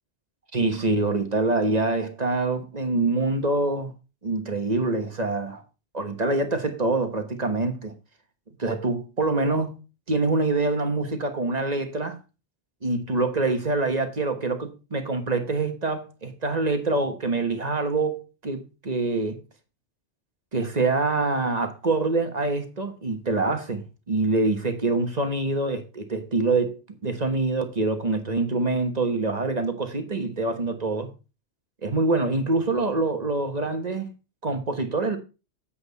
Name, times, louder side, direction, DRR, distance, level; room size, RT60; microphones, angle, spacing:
voice 1, 0.5-3.9 4.2-5.6 5.9-7.9 8.6-9.8 10.1-12.2 12.8-19.4 20.5-31.1 31.8-34.1 34.4-35.2, right 3 dB, 40° right, 1.4 m, -25 dB
8.5 x 7.9 x 4.0 m
omnidirectional pair, 1.1 m